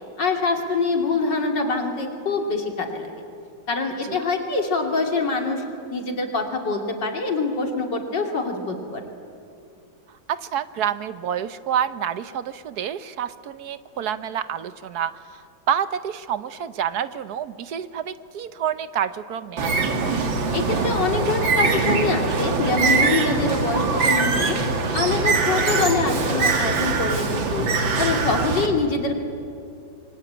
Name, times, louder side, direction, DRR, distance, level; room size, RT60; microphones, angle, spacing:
voice 1, 0.2-3.1 3.7-9.0 20.5-24.6 24.9-27.7 28.0-29.2, left 3 dB, 65° left, 3 dB, 3.4 m, -25 dB
voice 2, 10.3-20.2, right 9 dB, 60° right, 13 dB, 1.2 m, -28 dB
Bird, 19.6-28.7, right 4 dB, 80° right, 2.6 m, -22 dB
26.5 x 23.5 x 8.9 m, 2.4 s
omnidirectional pair, 2.1 m